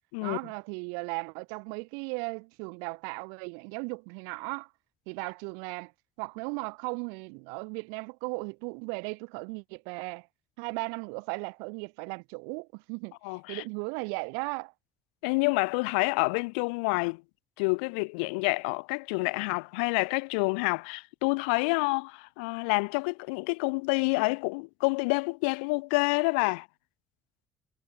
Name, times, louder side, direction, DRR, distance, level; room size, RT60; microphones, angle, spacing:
voice 1, 0.2-4.7 5.1-5.9 6.2-10.3 10.6-14.7, right 40 dB or more, 85° right, 2.7 m, -36 dB
voice 2, 13.2-13.6 15.2-17.2 17.6-26.7, left 31 dB, 90° left, 1.1 m, -28 dB
supercardioid pair, 65°, 5 cm